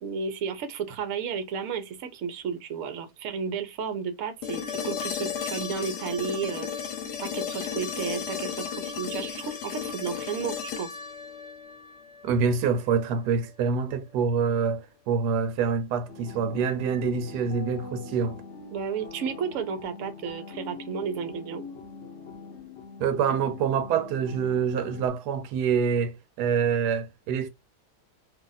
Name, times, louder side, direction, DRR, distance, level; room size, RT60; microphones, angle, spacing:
voice 1, 0.0-6.7 7.2-10.9 18.7-21.6, right 6 dB, 60° right, 1.0 m, -33 dB
sound 1, 4.4-12.5 14.6-14.7, left 7 dB, 80° left, 1.2 m, -34 dB
voice 2, 12.2-18.4 23.0-27.5, right 6 dB, 80° right, 1.1 m, -26 dB
sound 2, 16.1-25.1, left 4 dB, 55° left, 0.9 m, -42 dB
2.8 x 2.4 x 3.9 m
omnidirectional pair, 1.7 m